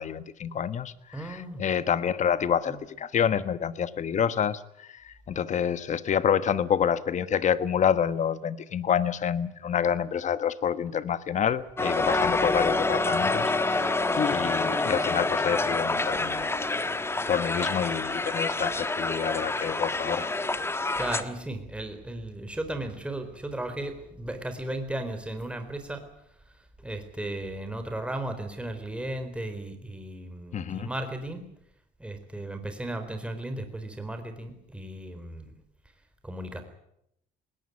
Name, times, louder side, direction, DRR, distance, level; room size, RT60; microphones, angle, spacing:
voice 1, 0.0-16.5 17.3-20.3 30.5-30.9, left 8 dB, 45° left, 14 dB, 1.3 m, -28 dB
voice 2, 1.1-1.6 2.7-2.8 21.0-26.0 26.8-31.4 32.0-35.5 36.2-36.6, right 1 dB, 5° right, 7 dB, 4.0 m, -35 dB
Crowd, 11.8-21.2, left 2 dB, 15° left, 1.4 m, -27 dB
20.5 x 18.0 x 9.6 m, 0.78 s
cardioid pair, 110°, 17 cm